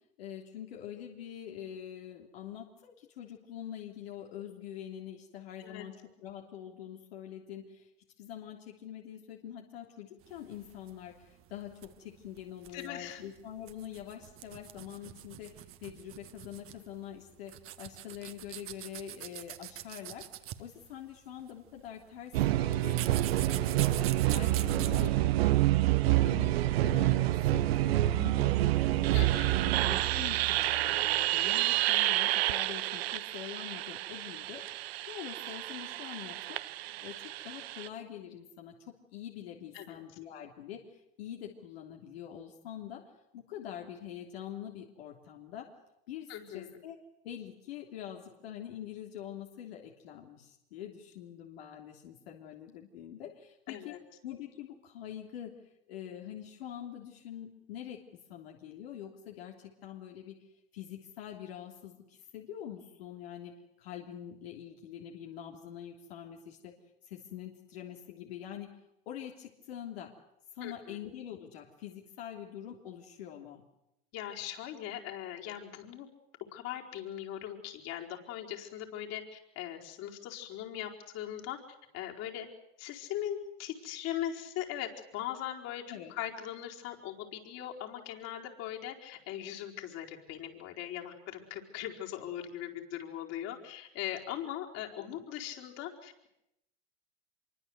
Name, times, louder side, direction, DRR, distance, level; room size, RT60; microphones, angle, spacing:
voice 1, 0.2-5.9 6.2-7.9 8.2-20.2 20.6-23.1 23.4-24.0 24.3-29.1 29.6-34.6 35.1-36.6 37.0-43.0 43.3-45.7 46.1-47.0 47.2-53.9 54.2-55.5 55.9-58.0 58.3-60.5 60.7-63.5 63.8-66.7 67.0-68.7 69.0-70.1 70.5-73.6 85.9-86.1 94.9-95.1, left 10 dB, 80° left, 0 dB, 3.3 m, -45 dB
sound 1, 10.2-25.1, right 13 dB, 45° right, 1.8 m, -45 dB
voice 2, 12.7-13.2 24.5-24.7 29.1-29.6 39.7-40.0 46.3-46.7 53.7-54.0 70.6-71.0 74.1-76.1 76.5-81.6 81.9-82.5 82.8-85.8 86.1-96.3, left 11 dB, 55° left, 1 dB, 4.6 m, -40 dB
sound 2, 22.3-37.9, right 16 dB, 80° right, 1.0 m, -28 dB
25.5 x 23.5 x 8.1 m, 0.84 s
hypercardioid pair, 105°, 30 cm